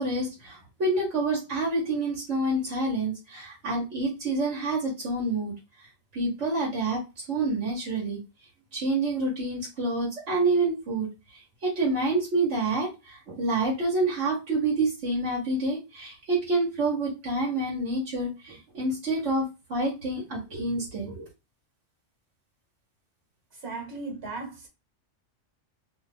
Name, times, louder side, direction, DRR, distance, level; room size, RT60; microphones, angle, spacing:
voice 1, 0.0-5.5 6.1-7.0 7.3-8.2 8.7-11.1 11.6-12.9 13.3-19.4 19.7-21.3, right 2 dB, 75° right, 1.3 m, -27 dB
voice 2, 23.6-24.7, right 3 dB, 60° right, 1.4 m, -36 dB
2.8 x 2.3 x 3.3 m
omnidirectional pair, 1.2 m